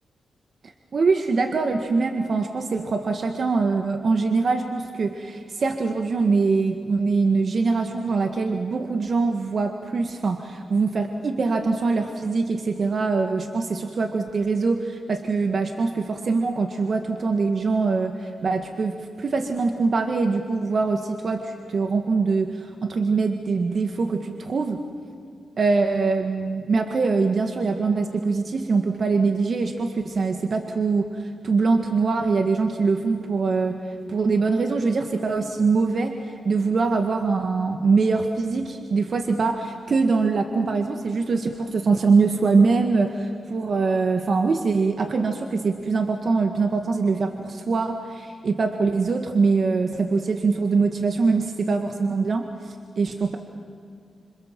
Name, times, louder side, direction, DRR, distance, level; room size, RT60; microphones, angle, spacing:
voice 1, 0.9-24.8 25.6-53.4, right 4 dB, 60° right, 5 dB, 1.8 m, -23 dB
27.0 x 26.0 x 7.6 m, 2.3 s
cardioid pair, 65°, 0 cm